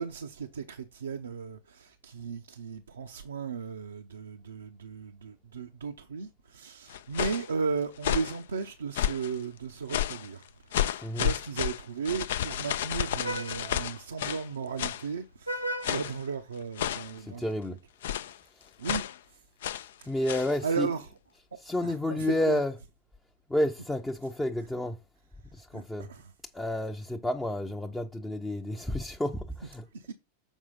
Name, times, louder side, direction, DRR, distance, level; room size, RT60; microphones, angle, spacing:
voice 1, 0.0-10.4 10.7-17.5 18.8-19.1 20.0-20.1 20.6-21.1 21.8-22.6 25.7-26.3 29.9-30.1, right 5 dB, 70° right, 0.6 m, -35 dB
sound 1, 6.9-7.5 8.0-8.4 8.9-9.4 9.9-10.3 10.7-14.5 14.8-15.1 15.8-16.2 16.8-17.2 18.0-18.4 18.8-19.2 19.6-19.9 20.3-20.5, left 11 dB, 60° left, 0.3 m, -31 dB
Vehicle horn car horn honking, 8.9-17.1, equal, 90° right, 1.0 m, -43 dB
voice 2, 11.0-11.3 17.2-17.8 18.6-18.7 20.1-20.9 21.6-22.7 23.5-25.0 25.5-26.1 26.5-29.9, left 1 dB, 5° left, 0.6 m, -30 dB
7.2 x 4.7 x 5.4 m
figure-of-eight pair, 90°, 0 cm